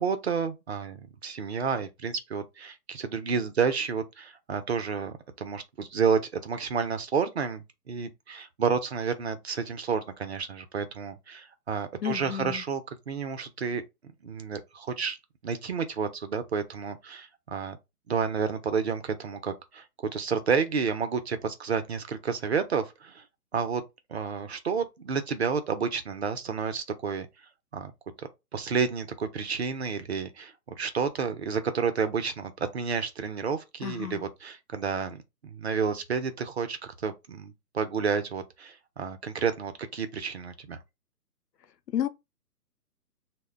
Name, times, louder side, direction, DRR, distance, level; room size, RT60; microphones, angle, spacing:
voice 1, 0.0-13.8 14.2-15.2 15.4-17.8 18.1-23.2 23.5-23.8 24.1-27.3 27.7-27.9 28.2-40.8, right 6 dB, 45° right, 0.4 m, -30 dB
voice 2, 12.0-12.6 33.8-34.2 41.9-42.1, left 10 dB, 90° left, 0.6 m, -31 dB
2.1 x 2.1 x 3.6 m
figure-of-eight pair, 140°, 48 cm